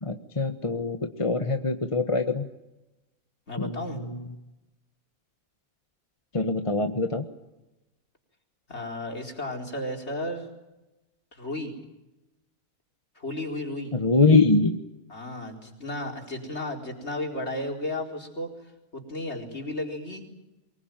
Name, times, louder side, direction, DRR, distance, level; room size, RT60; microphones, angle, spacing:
voice 1, 0.0-2.4 3.6-4.2 6.3-7.2 13.9-14.8, left 3 dB, 25° left, 7 dB, 1.2 m, -23 dB
voice 2, 3.5-4.0 8.7-10.5 11.3-11.7 13.2-13.9 15.1-18.5 18.9-20.2, left 1 dB, 50° left, 2 dB, 4.6 m, -33 dB
24.0 x 21.5 x 9.1 m, 0.97 s
omnidirectional pair, 1.5 m